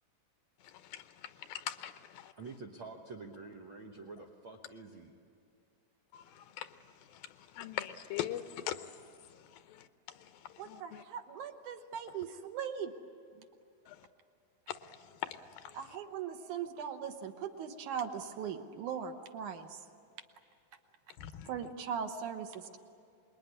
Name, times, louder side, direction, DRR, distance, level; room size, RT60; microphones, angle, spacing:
voice 1, 1.5-2.3 6.1-6.2 6.6-6.7 7.6-8.8 10.7-11.0 13.9-14.0 21.2-21.5, left 11 dB, 80° left, 10 dB, 2.4 m, -39 dB
voice 2, 2.4-5.2, right 3 dB, 90° right, 2 dB, 1.1 m, -47 dB
voice 3, 10.6-12.9 15.7-19.7 21.5-22.8, right 7 dB, 65° right, 7 dB, 2.3 m, -39 dB
26.0 x 21.0 x 9.8 m, 2.4 s
omnidirectional pair, 4.2 m